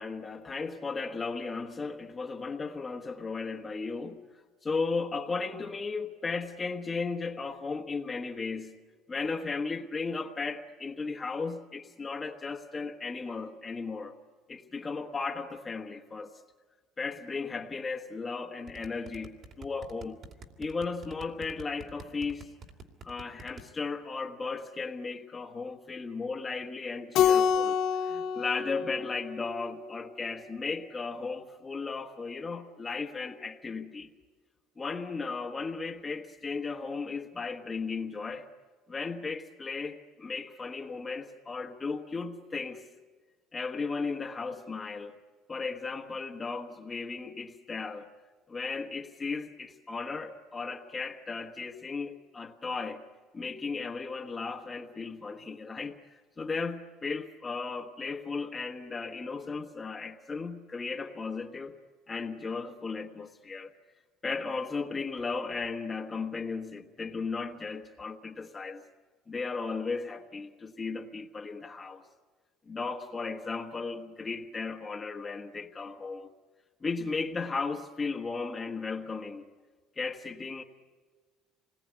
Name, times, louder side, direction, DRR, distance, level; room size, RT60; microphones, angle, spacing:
voice 1, 0.0-4.2 4.6-8.7 9.1-14.1 14.5-16.3 17.0-20.2 20.6-22.5 23.0-34.1 34.8-38.5 38.9-42.9 43.5-45.2 45.5-48.1 48.5-53.0 53.3-61.8 62.1-63.7 64.2-68.8 69.3-72.0 72.7-76.3 76.8-79.4 80.0-80.6, left 4 dB, 20° left, 3 dB, 1.3 m, -35 dB
sound 1, 18.7-23.6, right 3 dB, 45° right, 2.8 m, -46 dB
Keyboard (musical), 27.1-29.8, left 8 dB, 60° left, 1.2 m, -27 dB
27.0 x 21.0 x 9.8 m, 1.5 s
cardioid pair, 150°, 0 cm